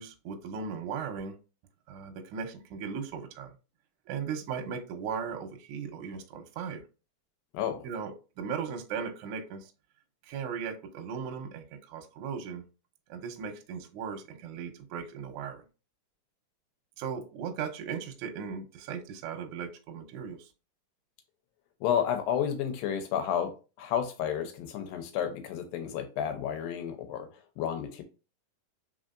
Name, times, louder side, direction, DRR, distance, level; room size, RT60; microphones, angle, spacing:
voice 1, 0.0-1.4 1.9-3.5 4.1-6.8 7.8-9.7 10.3-12.6 13.1-15.6 17.0-20.5, right 6 dB, 75° right, 1.9 m, -37 dB
voice 2, 21.8-23.5 23.8-27.3 27.6-28.0, left 9 dB, 85° left, 2.5 m, -31 dB
4.9 x 3.7 x 2.5 m
omnidirectional pair, 4.1 m